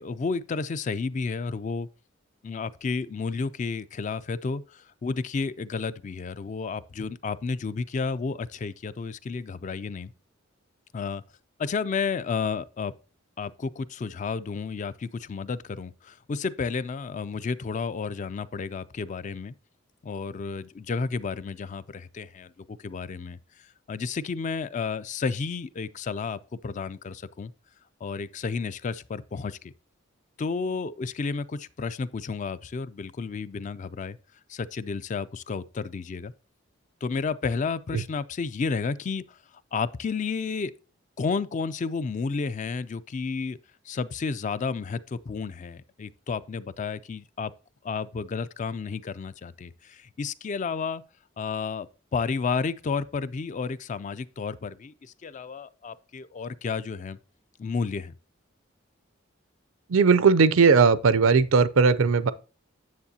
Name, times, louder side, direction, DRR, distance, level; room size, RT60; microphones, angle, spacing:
voice 1, 0.0-1.9 2.4-10.1 10.9-11.2 11.6-12.9 13.4-19.5 20.0-23.4 23.9-27.5 28.0-29.7 30.4-34.2 34.5-36.3 37.0-39.4 39.7-40.7 41.2-43.6 43.9-47.5 47.8-51.0 51.4-57.2 57.6-58.1, left 4 dB, 35° left, 0.3 m, -31 dB
voice 2, 59.9-62.3, right 5 dB, 80° right, 0.5 m, -18 dB
9.5 x 7.2 x 2.8 m
head